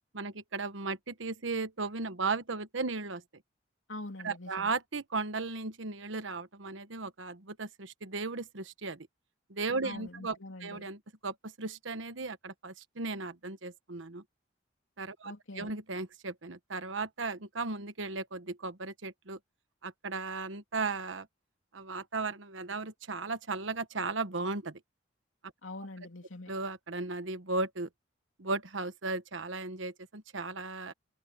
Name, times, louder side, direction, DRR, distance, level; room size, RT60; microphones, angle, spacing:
voice 1, 0.1-3.2 4.2-9.1 9.5-14.2 15.0-19.4 19.8-21.3 21.7-24.8 26.5-27.9 28.4-30.9, right 3 dB, 80° right, 1.2 m, -36 dB
voice 2, 3.9-4.7 9.8-10.9 15.2-15.8 25.6-26.5, left 2 dB, 85° left, 3.0 m, -44 dB
head